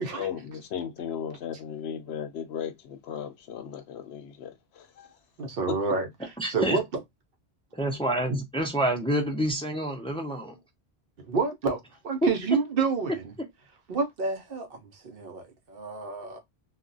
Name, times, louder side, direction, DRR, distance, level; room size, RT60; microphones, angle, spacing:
voice 1, 0.2-5.2 5.7-5.8, left 8 dB, 75° left, 0.8 m, -36 dB
voice 2, 5.4-7.0 8.3-8.4 11.2-13.3 13.9-16.4, right 4 dB, 60° right, 0.8 m, -29 dB
voice 3, 6.4-6.8 7.7-10.6 12.2-12.3, right 1 dB, 10° left, 0.3 m, -27 dB
2.3 x 2.1 x 3.8 m
omnidirectional pair, 1.1 m